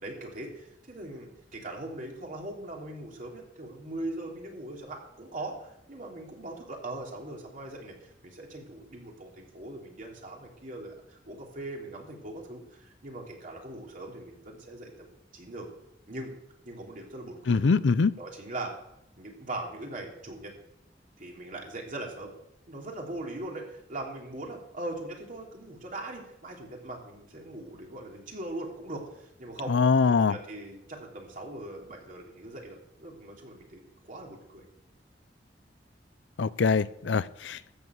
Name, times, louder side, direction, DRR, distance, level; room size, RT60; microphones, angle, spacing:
voice 1, 0.0-15.7 16.1-16.3 16.6-17.6 18.2-18.7 19.2-20.5 21.2-22.3 22.7-29.7 30.1-34.6, right 2 dB, 50° right, 0 dB, 3.1 m, -40 dB
voice 2, 17.5-18.1 29.7-30.4 36.4-37.8, left 4 dB, 80° left, 17 dB, 0.5 m, -23 dB
13.5 x 7.2 x 8.1 m, 0.81 s
head